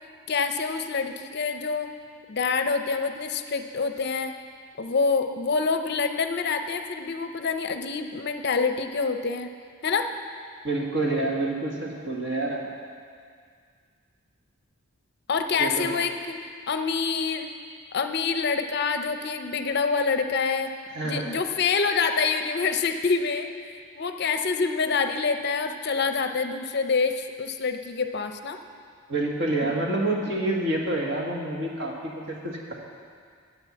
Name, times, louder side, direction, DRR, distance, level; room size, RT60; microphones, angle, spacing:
voice 1, 0.3-1.9 2.3-4.3 4.8-9.5 9.8-10.1 15.3-17.5 17.9-20.7 21.0-23.5 23.9-28.6, left 5 dB, 50° left, 7 dB, 0.5 m, -26 dB
voice 2, 10.6-12.6 15.6-15.9 20.9-21.4 29.1-32.7, right 2 dB, 55° right, -1 dB, 1.7 m, -28 dB
9.1 x 8.8 x 7.1 m, 2.1 s
head